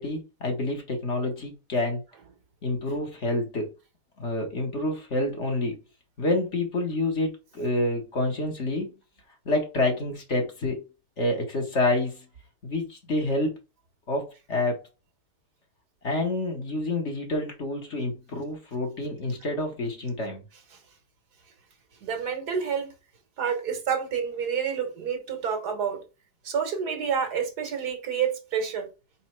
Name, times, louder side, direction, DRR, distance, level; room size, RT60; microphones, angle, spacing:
voice 1, 0.0-2.0 2.6-3.7 4.2-5.8 6.2-9.0 9.4-10.8 11.2-12.2 12.6-13.5 14.1-14.8 16.0-20.4, left 2 dB, 45° left, 1.5 m, -28 dB
voice 2, 22.0-22.9 23.4-26.0 26.4-28.9, right 7 dB, 70° right, 1.8 m, -28 dB
4.7 x 4.3 x 4.6 m
omnidirectional pair, 1.8 m